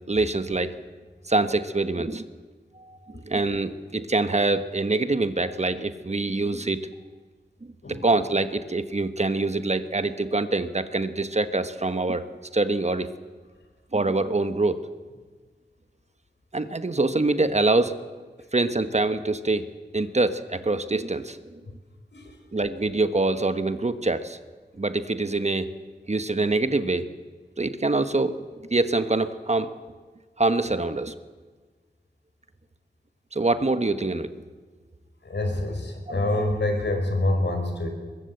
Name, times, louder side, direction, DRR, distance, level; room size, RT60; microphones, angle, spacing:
voice 1, 0.1-0.7 1.3-2.3 2.8-6.8 7.9-12.2 12.5-13.1 13.9-14.8 16.5-18.0 18.5-19.7 19.9-21.6 22.5-24.4 24.8-25.7 26.1-27.1 27.6-28.4 28.7-29.7 30.4-31.1 33.3-34.4 36.1-36.4, right 2 dB, 40° right, 10 dB, 1.2 m, -25 dB
voice 2, 35.2-37.9, left 1 dB, 75° left, 4 dB, 5.1 m, -26 dB
22.0 x 21.5 x 7.9 m, 1.4 s
wide cardioid pair, 90°, 18 cm